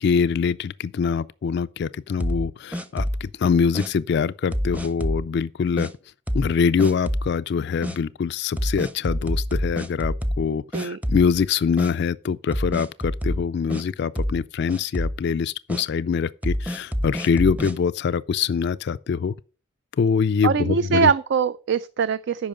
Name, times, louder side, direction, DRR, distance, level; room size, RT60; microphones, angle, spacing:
voice 1, 0.0-5.9 6.3-19.3 20.0-21.1, left 6 dB, 55° left, 0.3 m, -24 dB
sound 1, 2.2-3.3 3.7-3.9 4.5-5.3 5.8-5.9 6.3-6.5 6.8-7.3 7.8-8.0 8.6-10.5 10.7-11.5 11.8-11.9 12.5-13.8 14.2-14.4 14.7-15.2 15.7-15.8 16.4-17.7, equal, 5° right, 0.6 m, -27 dB
voice 2, 20.4-22.5, right 6 dB, 60° right, 0.4 m, -22 dB
8.8 x 5.4 x 6.5 m
head